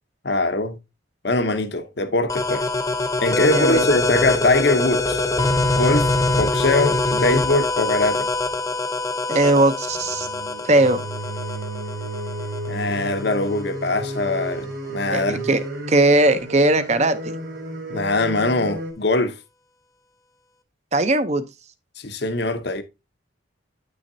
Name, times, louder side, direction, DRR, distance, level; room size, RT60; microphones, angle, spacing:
voice 1, 0.2-0.8 1.2-2.7 3.2-5.3 5.8-6.1 6.4-8.3 12.7-15.5 17.9-19.3 22.0-22.8, left 2 dB, 55° left, 0.9 m, -22 dB
sound 1, 2.3-13.7, left 2 dB, 15° left, 0.7 m, -24 dB
voice 2, 3.5-3.8 9.3-10.3 10.6-11.0 15.1-17.3 20.9-21.4, right 2 dB, 35° right, 0.7 m, -19 dB
sound 2, 3.7-6.7 9.9-18.9, right 2 dB, 75° right, 3.2 m, -33 dB
9.5 x 6.4 x 2.7 m
head